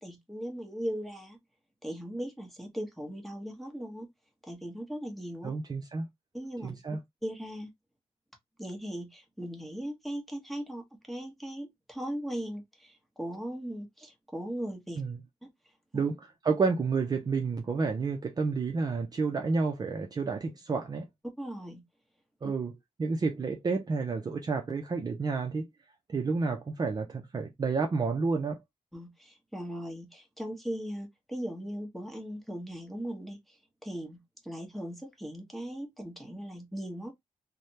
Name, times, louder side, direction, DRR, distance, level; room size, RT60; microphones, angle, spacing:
voice 1, 0.0-1.4 1.8-4.1 4.5-5.5 6.3-6.8 7.2-7.7 8.6-15.0 15.4-15.5 15.9-16.0 21.4-21.8 28.9-33.6 33.8-37.1, equal, ahead, 1.0 m, -38 dB
voice 2, 5.4-6.1 6.6-7.0 15.0-15.2 15.9-21.1 22.4-22.7 23.0-25.7 26.1-28.6, right 4 dB, 30° right, 0.5 m, -30 dB
3.3 x 2.1 x 2.7 m
wide cardioid pair, 130°, 12 cm